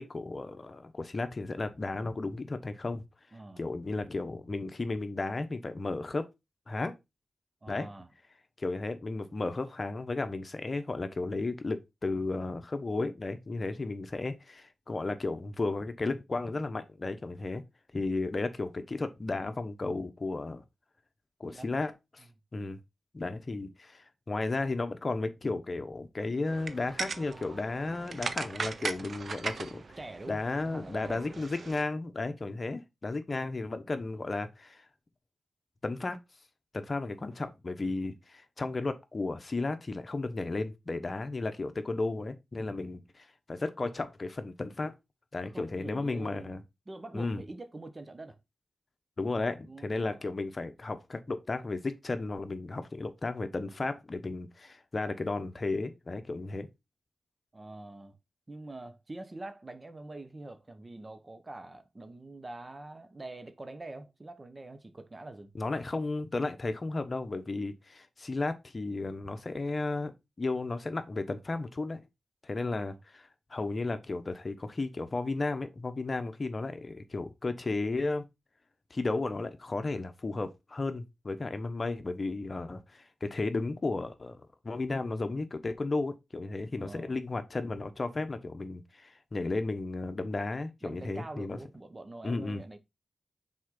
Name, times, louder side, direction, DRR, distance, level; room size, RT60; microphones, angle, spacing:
voice 1, 0.0-3.0 3.6-6.3 6.7-7.0 7.7-7.9 8.6-17.6 17.9-20.6 21.4-22.2 22.5-22.8 23.1-30.0 30.3-34.8 35.8-36.2 36.7-44.9 45.3-46.6 47.1-47.4 49.2-56.7 65.6-70.1 70.4-72.0 72.4-78.2 78.9-91.6 92.2-92.6, left 3 dB, 45° left, 1.1 m, -34 dB
voice 2, 3.3-3.6 7.6-8.1 21.5-21.7 30.0-31.5 33.3-33.4 37.2-37.5 45.4-48.4 49.6-50.3 57.5-58.2 58.5-65.5 72.6-73.0 86.8-87.2 90.8-92.8, right 2 dB, 35° right, 1.2 m, -45 dB
sound 1, 26.5-31.8, right 4 dB, 65° right, 0.7 m, -39 dB
6.2 x 4.5 x 3.9 m
cardioid pair, 50°, 0 cm